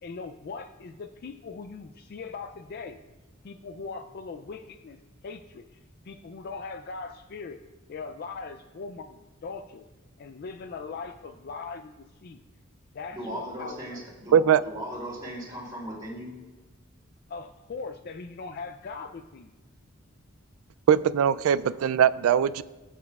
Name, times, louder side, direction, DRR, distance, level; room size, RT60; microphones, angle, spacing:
voice 1, 0.0-3.0 3.4-5.0 5.2-5.8 6.0-7.6 7.9-9.8 10.2-12.4 12.9-14.0 17.3-19.5, left 4 dB, 50° left, 8 dB, 0.3 m, -40 dB
voice 2, 13.1-16.3, equal, 20° right, -6 dB, 2.8 m, -37 dB
voice 3, 20.9-22.6, right 8 dB, 85° right, 18 dB, 0.3 m, -21 dB
15.5 x 7.4 x 2.3 m, 1.2 s
head